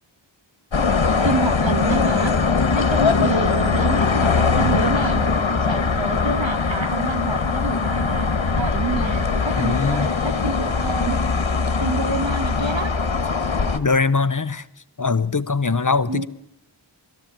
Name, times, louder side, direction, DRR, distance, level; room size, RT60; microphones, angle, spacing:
sound 1, 0.7-13.8, left 4 dB, 75° left, 1.4 m, -21 dB
voice 1, 1.2-2.4 2.7-5.3 5.7-11.3 11.8-12.9 16.1-16.3, right 3 dB, 75° right, 8 dB, 1.8 m, -28 dB
voice 2, 9.6-10.1 13.7-14.6 15.0-16.3, left 4 dB, 40° left, 15 dB, 0.8 m, -21 dB
21.0 x 14.5 x 8.8 m, 0.81 s
wide cardioid pair, 55°, 46 cm